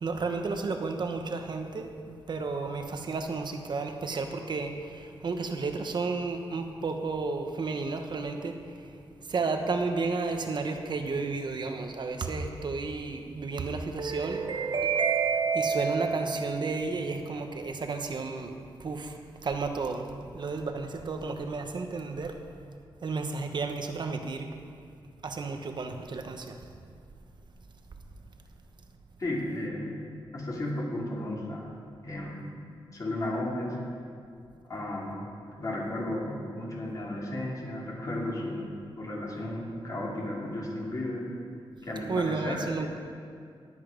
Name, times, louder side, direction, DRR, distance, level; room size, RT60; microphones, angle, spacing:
voice 1, 0.0-8.6 9.3-18.5 18.8-19.2 19.4-20.1 20.3-22.3 23.0-24.5 25.2-26.6 42.1-42.9, right 4 dB, 55° right, 5 dB, 1.1 m, -31 dB
voice 2, 29.2-30.0 30.3-31.7 32.0-32.5 32.9-33.8 34.6-35.3 35.6-38.7 39.0-41.3 41.8-42.9, left 1 dB, 40° left, -3 dB, 2.9 m, -34 dB
19.5 x 8.5 x 5.2 m, 2.3 s
wide cardioid pair, 130°, 9 cm